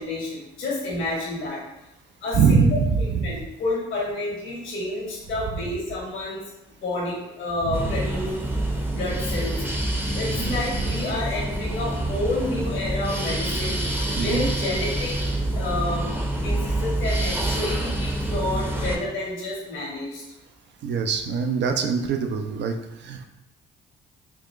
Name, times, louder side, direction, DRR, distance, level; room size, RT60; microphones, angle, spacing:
voice 1, 0.0-1.6 2.2-6.4 6.8-8.3 8.9-9.6 10.1-13.8 14.2-15.1 15.5-16.1 16.4-20.2, left 2 dB, 75° left, -5 dB, 1.2 m, -29 dB
voice 2, 2.3-3.4 7.6-7.8 10.2-10.6 14.1-14.5 20.8-23.3, right 5 dB, 60° right, 6 dB, 0.5 m, -23 dB
sound 1, 7.7-19.0, right 1 dB, 10° right, 0.7 m, -27 dB
4.0 x 2.3 x 3.1 m, 0.90 s
supercardioid pair, 55°, 21 cm